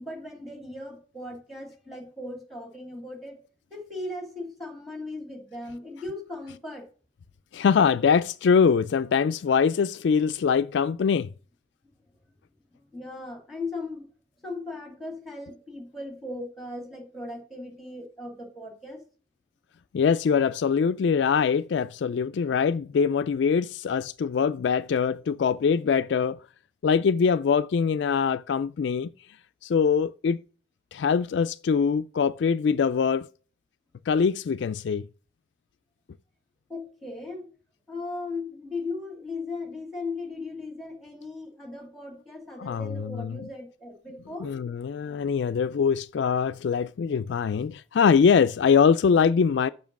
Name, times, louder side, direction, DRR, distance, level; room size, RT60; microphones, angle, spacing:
voice 1, 0.0-3.4 3.7-6.9 12.9-14.0 14.4-19.0 36.7-37.5 37.9-44.5, left 2 dB, ahead, 2.2 m, -37 dB
voice 2, 7.5-11.3 19.9-26.4 26.8-29.1 29.6-30.4 30.9-33.3 34.1-35.0 42.6-43.4 44.4-49.7, left 6 dB, 65° left, 0.3 m, -23 dB
7.3 x 6.0 x 5.9 m
head